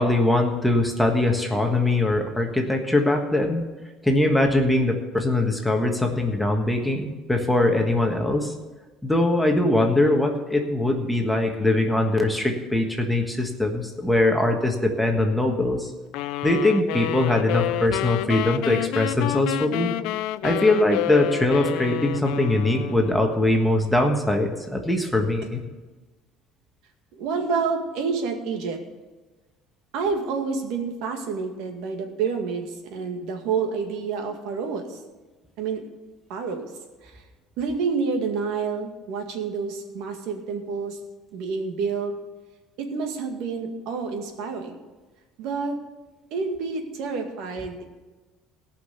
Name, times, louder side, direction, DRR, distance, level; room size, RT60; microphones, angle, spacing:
voice 1, 0.0-3.6 4.0-8.5 9.0-15.9 16.4-19.9 20.4-25.6, left 2 dB, 5° left, 2 dB, 1.4 m, -22 dB
sound 1, 16.1-23.3, left 16 dB, 75° left, 0.4 m, -29 dB
voice 2, 27.1-28.8 29.9-35.0 35.6-35.8 36.3-36.7 37.0-37.2 37.6-41.0 41.3-42.1 42.8-44.8 45.4-45.8 46.3-47.8, right 5 dB, 70° right, 4 dB, 2.1 m, -28 dB
17.5 x 5.8 x 6.8 m, 1.2 s
cardioid pair, 140°, 0 cm